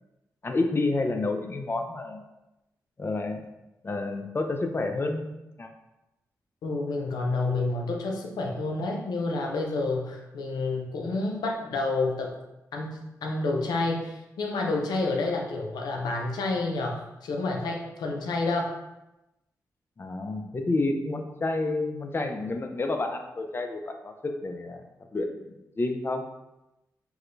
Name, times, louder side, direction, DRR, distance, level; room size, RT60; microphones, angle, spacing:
voice 1, 0.4-2.2 3.0-3.4 3.8-5.7 20.0-24.8 25.1-26.2, left 2 dB, 35° left, 5 dB, 0.5 m, -29 dB
voice 2, 6.6-12.4 12.7-18.7, left 3 dB, 85° left, 1 dB, 0.5 m, -29 dB
4.7 x 2.1 x 2.6 m, 0.95 s
cardioid pair, 60°, 7 cm